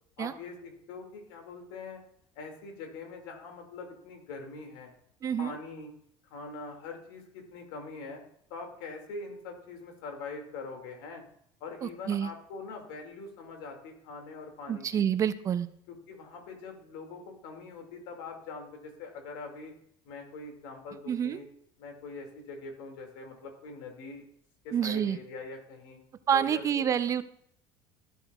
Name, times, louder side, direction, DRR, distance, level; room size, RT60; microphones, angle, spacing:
voice 1, 0.2-2.0 2.4-4.9 5.4-5.9 6.3-8.2 8.5-11.2 11.6-15.0 15.9-19.7 20.1-21.4 21.8-24.3 24.6-26.0 26.3-26.8, left 3 dB, 80° left, 3 dB, 2.1 m, -43 dB
voice 2, 5.2-5.5 11.8-12.3 14.7-15.7 21.1-21.4 24.7-25.2 26.3-27.2, right 8 dB, 30° right, 13 dB, 0.4 m, -28 dB
12.5 x 7.7 x 2.3 m, 0.70 s
cardioid pair, 135°, 11 cm